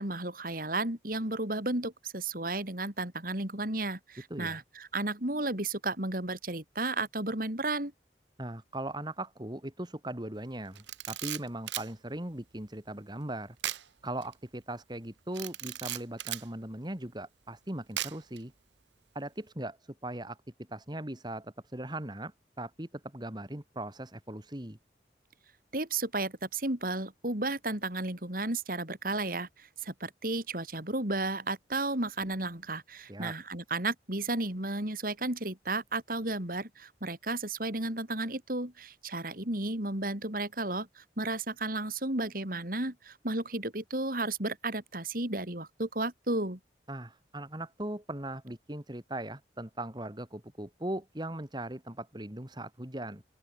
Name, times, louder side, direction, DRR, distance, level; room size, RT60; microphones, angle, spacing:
voice 1, 0.0-7.9 25.7-46.6, right 2 dB, 50° right, 4.2 m, -33 dB
voice 2, 4.3-4.6 8.4-13.6 14.0-18.5 19.1-19.8 20.0-20.4 20.7-24.8 33.1-33.3 46.9-53.2, right 1 dB, 25° right, 2.4 m, -39 dB
Camera, 10.7-11.9 13.6-13.9 14.2-14.3 15.3-16.5 18.0-18.4, right 12 dB, 90° right, 1.1 m, -36 dB
open air
head